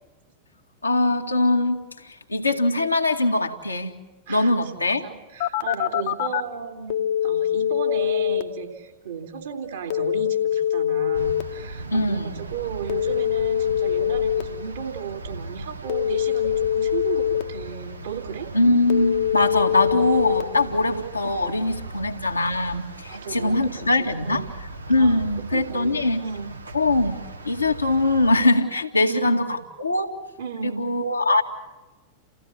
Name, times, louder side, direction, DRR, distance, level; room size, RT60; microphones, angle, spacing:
voice 1, 0.8-3.9 4.3-5.1 11.9-12.4 18.5-24.4 24.9-26.3 26.7-27.2 27.4-30.1 30.6-31.4, left 2 dB, 85° left, 2 dB, 2.1 m, -22 dB
voice 2, 4.3-18.5 20.6-20.9 21.6-22.0 23.1-23.7 24.0-24.5 25.0-25.2 25.5-26.5 29.0-29.5 30.4-30.9, right 7 dB, 60° right, 3 dB, 3.2 m, -35 dB
Telephone, 5.4-6.4 6.9-8.4 9.9-11.4 12.9-14.4 15.9-17.4 18.9-20.4, left 10 dB, 50° left, 1.3 m, -23 dB
sound 1, 11.1-28.5, right 2 dB, 80° right, 1.5 m, -38 dB
29.5 x 16.0 x 10.0 m, 1.1 s
figure-of-eight pair, 90°, 0 cm